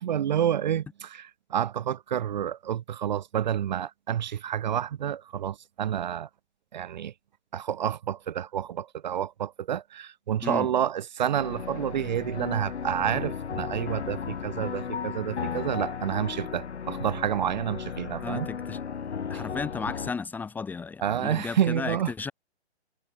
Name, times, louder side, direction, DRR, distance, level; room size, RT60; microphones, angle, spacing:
voice 1, 0.0-6.3 6.7-7.1 7.5-18.5 21.0-22.1, right 10 dB, 40° right, 1.6 m, -29 dB
sound 1, 11.4-20.1, left 6 dB, 70° left, 1.9 m, -35 dB
voice 2, 18.2-18.8 19.3-22.3, left 5 dB, 5° left, 1.8 m, -34 dB
hypercardioid pair, 155°, 34 cm